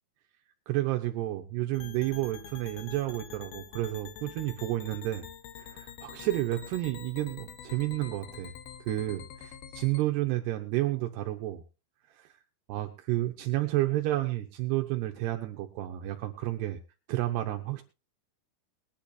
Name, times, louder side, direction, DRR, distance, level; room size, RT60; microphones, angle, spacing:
voice 1, 0.7-5.2 5.6-8.5 8.9-11.6 12.2-12.3 12.7-16.8 17.1-17.8, right 16 dB, 90° right, 5 dB, 2.3 m, -31 dB
sound 1, 1.7-10.0, left 9 dB, 85° left, 2.1 m, -46 dB
21.5 x 10.0 x 2.7 m, 0.30 s
omnidirectional pair, 6.0 m